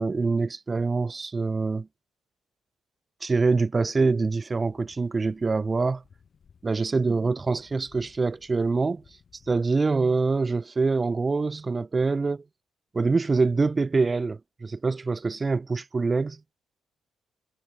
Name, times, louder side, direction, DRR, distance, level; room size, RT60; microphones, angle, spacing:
voice 1, 0.0-1.9 3.2-6.0 6.6-9.0 9.5-12.4 12.9-16.4, right 4 dB, 30° right, 0.8 m, -25 dB
sound 1, 4.6-9.6, left 6 dB, 50° left, 3.2 m, -59 dB
cardioid pair, 90°, 0 cm